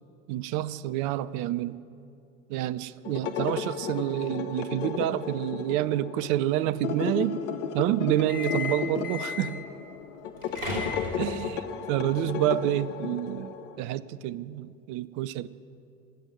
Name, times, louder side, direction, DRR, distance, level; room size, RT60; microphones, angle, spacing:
voice 1, 0.3-1.8 2.5-7.4 7.7-9.7 11.2-15.5, right 13 dB, 50° right, 16 dB, 0.6 m, -28 dB
sound 1, 3.0-13.8, left 7 dB, 65° left, 1.0 m, -34 dB
sound 2, 8.2-9.7 10.3-11.4, left 3 dB, 80° right, 3.5 m, -34 dB
18.0 x 8.0 x 9.2 m, 2.6 s
figure-of-eight pair, 65°, 40 cm